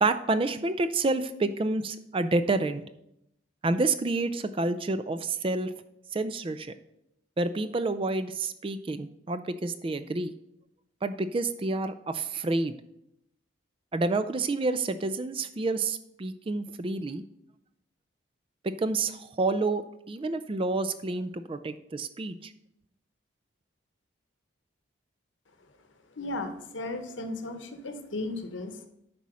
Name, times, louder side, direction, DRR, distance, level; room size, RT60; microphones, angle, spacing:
voice 1, 0.0-2.8 3.6-5.7 6.1-6.7 7.4-10.3 11.0-12.7 13.9-17.2 18.6-19.8 20.1-22.5, right 3 dB, 25° right, 12 dB, 0.3 m, -29 dB
voice 2, 26.2-28.9, left 2 dB, 70° left, 7 dB, 1.0 m, -35 dB
9.5 x 4.2 x 6.1 m, 0.81 s
head